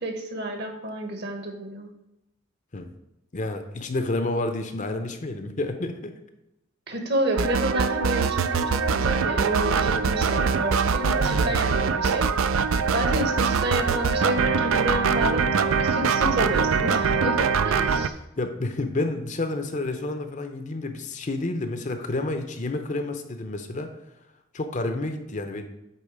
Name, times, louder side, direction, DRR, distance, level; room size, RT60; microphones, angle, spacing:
voice 1, 0.0-1.9 6.9-12.3 12.9-18.1, right 1 dB, 50° right, 4 dB, 1.2 m, -29 dB
voice 2, 3.3-6.1 11.4-11.7 18.4-24.0 24.5-25.6, left 2 dB, 35° left, 7 dB, 0.6 m, -30 dB
sound 1, 7.3-18.1, right 5 dB, 65° right, 0.4 m, -23 dB
8.6 x 3.8 x 5.0 m, 0.91 s
head